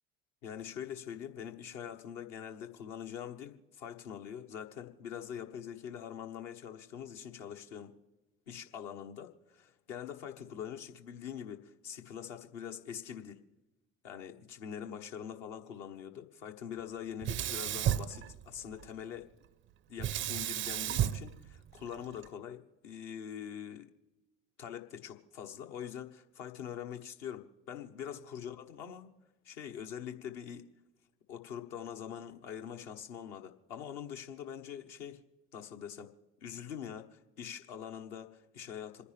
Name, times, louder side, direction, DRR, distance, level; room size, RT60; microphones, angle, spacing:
voice 1, 0.4-7.9 8.5-13.4 14.0-19.3 19.9-23.9 24.6-29.1 29.4-30.7 31.3-35.2 35.5-36.1 36.4-39.0, left 8 dB, 65° left, 5 dB, 1.4 m, -44 dB
Sink (filling or washing), 17.2-18.9 20.0-22.3, right 12 dB, 30° right, 0.4 m, -33 dB
27.5 x 10.0 x 3.4 m, 1.0 s
figure-of-eight pair, 60°, 38 cm